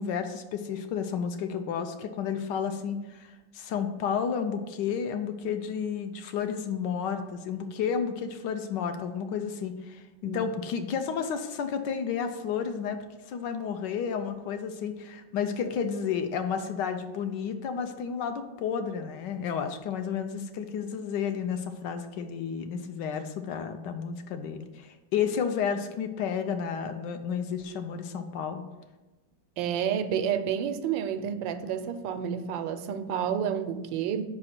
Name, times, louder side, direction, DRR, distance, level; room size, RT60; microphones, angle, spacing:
voice 1, 0.0-13.0 13.3-28.6, left 7 dB, 75° left, 1.2 m, -31 dB
voice 2, 29.6-34.2, right 8 dB, 90° right, 1.3 m, -30 dB
4.9 x 4.8 x 5.9 m
omnidirectional pair, 2.0 m